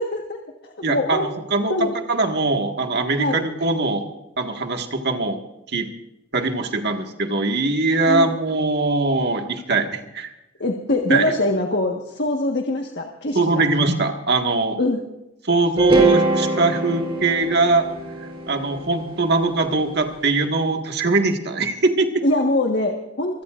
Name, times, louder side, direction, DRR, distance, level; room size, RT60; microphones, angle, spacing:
voice 1, 0.0-1.3 1.7-1.9 3.2-3.4 8.1-8.4 10.6-13.6 14.8-15.0 22.2-23.4, left 2 dB, 60° left, 2 dB, 1.5 m, -23 dB
voice 2, 0.8-4.0 4.4-5.4 5.7-5.9 6.3-10.3 11.1-11.3 13.4-14.8 15.5-17.9 18.5-22.2, right 3 dB, 60° right, 4 dB, 1.8 m, -21 dB
sound 1, 15.8-19.9, right 2 dB, 30° right, 3.5 m, -24 dB
25.5 x 17.0 x 2.5 m, 0.92 s
head